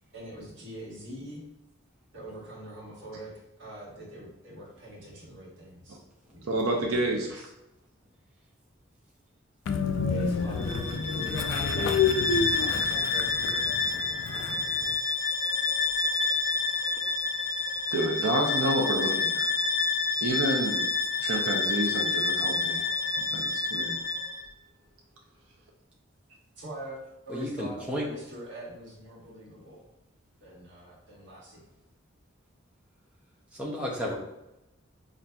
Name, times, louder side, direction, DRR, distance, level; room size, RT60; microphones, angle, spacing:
voice 1, 0.1-1.5 2.1-3.3 3.6-6.0 6.3-7.5 10.1-13.6 26.6-27.0 27.2-29.8 30.4-31.6, equal, 65° right, -5 dB, 1.4 m, -43 dB
voice 2, 6.5-7.4 17.9-19.5 20.2-20.8 21.2-22.8 23.3-24.0, right 1 dB, 85° right, -1 dB, 0.6 m, -29 dB
Train, 9.7-14.9, left 5 dB, 70° left, 0.3 m, -29 dB
Bowed string instrument, 10.6-24.4, left 4 dB, 35° left, 1.3 m, -29 dB
voice 3, 27.3-28.1 33.5-34.2, equal, 5° right, -4 dB, 0.4 m, -32 dB
5.5 x 2.5 x 2.2 m, 0.92 s
head